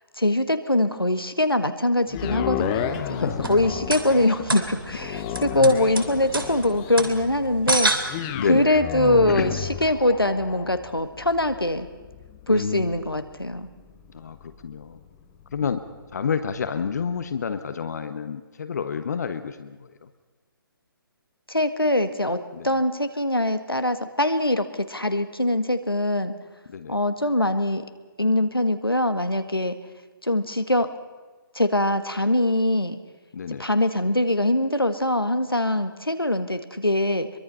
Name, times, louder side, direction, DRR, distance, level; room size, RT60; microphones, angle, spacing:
voice 1, 0.2-7.9 8.5-9.5 9.8-11.9 12.5-13.7 21.5-26.3 26.9-27.8 28.2-29.8 30.2-30.9 31.5-33.0 33.6-37.3, left 1 dB, 85° left, 8 dB, 1.7 m, -23 dB
sound 1, 2.1-16.3 16.8-16.9, left 10 dB, 20° left, 1.1 m, -34 dB
voice 2, 2.9-3.4 5.5-5.8 8.3-8.7 9.3-9.6 12.5-13.0 14.1-15.0 15.5-15.8 16.1-20.1 22.5-22.7 26.7-27.0 33.3-33.7, left 6 dB, 50° left, 10 dB, 1.2 m, -29 dB
sound 2, 3.3-8.6, right 2 dB, 75° right, 3.1 m, -29 dB
24.0 x 23.0 x 5.6 m, 1.3 s
figure-of-eight pair, 135°, 12 cm